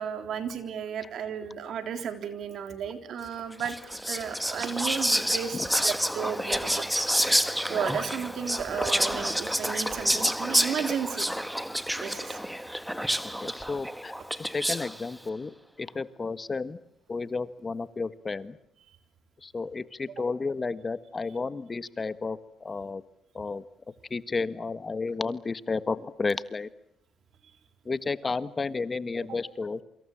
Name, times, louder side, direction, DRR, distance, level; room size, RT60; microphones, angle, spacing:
voice 1, 0.0-3.8 4.1-6.8 7.7-11.3 12.0-12.4 20.2-20.3 29.3-29.4, right 8 dB, 70° right, 8 dB, 3.7 m, -34 dB
Whispering, 3.6-15.0, equal, 5° right, 1.3 m, -28 dB
voice 2, 6.5-6.9 11.5-11.8 13.4-14.1 14.4-16.8 17.1-18.6 19.4-23.0 23.3-23.6 24.1-26.7 27.8-29.8, left 4 dB, 30° left, 14 dB, 1.5 m, -32 dB
27.5 x 25.5 x 7.4 m, 0.69 s
cardioid pair, 90°, 0 cm